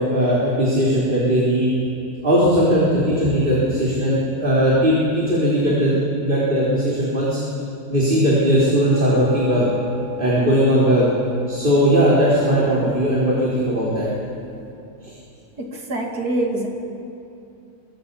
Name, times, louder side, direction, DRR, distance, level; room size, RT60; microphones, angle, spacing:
voice 1, 0.0-1.7 2.2-7.4 7.9-9.7 10.2-11.1 11.5-14.1 15.0-15.1, equal, 35° right, -7 dB, 4.3 m, -18 dB
sound 1, 8.9-14.4, left 4 dB, 10° right, 4.6 m, -37 dB
voice 2, 15.6-16.7, right 2 dB, 80° right, 1 dB, 3.1 m, -25 dB
25.5 x 24.0 x 5.6 m, 2.7 s
omnidirectional pair, 1.6 m